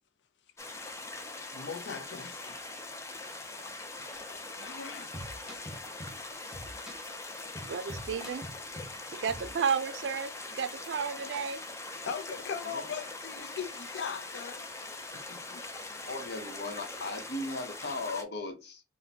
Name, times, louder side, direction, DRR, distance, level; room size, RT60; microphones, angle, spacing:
sound 1, 0.6-18.2, left 2 dB, 15° left, 0.4 m, -42 dB
voice 1, 1.5-2.4 4.6-5.1 12.0-14.6 15.3-15.6, left 6 dB, 80° left, 0.4 m, -39 dB
sound 2, 4.1-4.3 4.6-4.7 5.1-6.2 6.5-9.0 9.3-9.5, equal, 5° right, 0.9 m, -45 dB
voice 2, 7.6-8.5 9.1-11.6, right 6 dB, 80° right, 0.4 m, -32 dB
voice 3, 16.0-18.8, left 2 dB, 65° left, 0.8 m, -37 dB
4.1 x 2.1 x 2.7 m
head